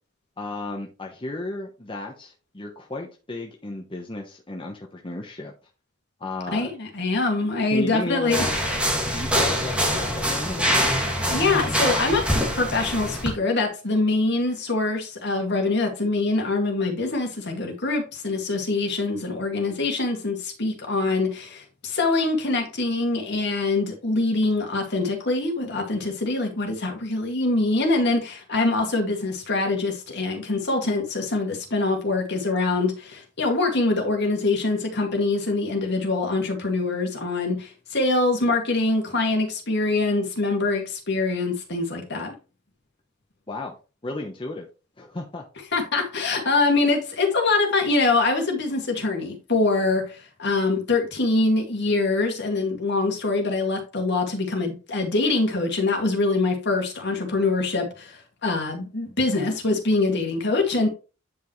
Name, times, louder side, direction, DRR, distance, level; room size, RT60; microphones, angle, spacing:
voice 1, 0.4-5.5 6.2-6.7 7.7-8.5 9.1-10.9 43.5-43.8 44.0-44.7 45.0-45.4, left 2 dB, 25° left, 1.0 m, -34 dB
voice 2, 6.5-8.5 11.3-12.3 12.5-42.4 45.7-60.9, left 3 dB, 55° left, 2.2 m, -24 dB
sound 1, 8.3-13.3, equal, 5° right, 2.0 m, -24 dB
9.5 x 5.5 x 3.2 m
head